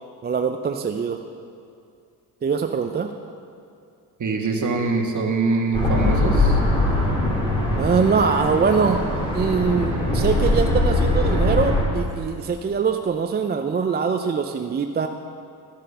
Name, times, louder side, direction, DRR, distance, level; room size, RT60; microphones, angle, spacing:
voice 1, 0.2-1.2 2.4-3.1 7.8-9.0 9.3-15.1, right 5 dB, 25° right, 6 dB, 0.4 m, -23 dB
voice 2, 4.2-6.6, right 3 dB, 40° right, 2 dB, 1.6 m, -23 dB
sound 1, 5.7-11.8, left 1 dB, 10° left, 3.0 m, -21 dB
13.0 x 6.3 x 5.5 m, 2.4 s
cardioid pair, 80°, 46 cm